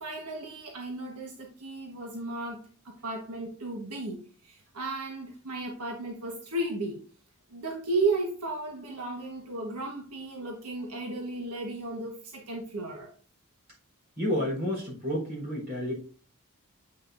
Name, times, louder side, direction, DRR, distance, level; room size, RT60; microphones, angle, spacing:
voice 1, 0.0-7.0 7.5-13.1, right 2 dB, 85° right, 0 dB, 1.3 m, -34 dB
voice 2, 14.2-15.9, equal, 45° right, -2 dB, 3.9 m, -30 dB
8.6 x 5.8 x 2.6 m, 0.40 s
head